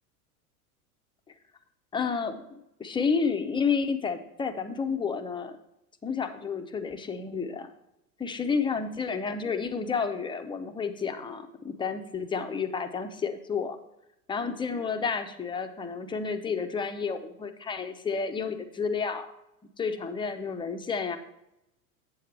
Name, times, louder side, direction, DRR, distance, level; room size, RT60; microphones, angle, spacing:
voice 1, 1.9-5.6 6.0-7.7 8.2-13.8 14.3-19.3 19.8-21.2, left 5 dB, 10° left, 7 dB, 0.5 m, -30 dB
7.7 x 7.5 x 3.3 m, 0.86 s
hypercardioid pair, 90°, 47 cm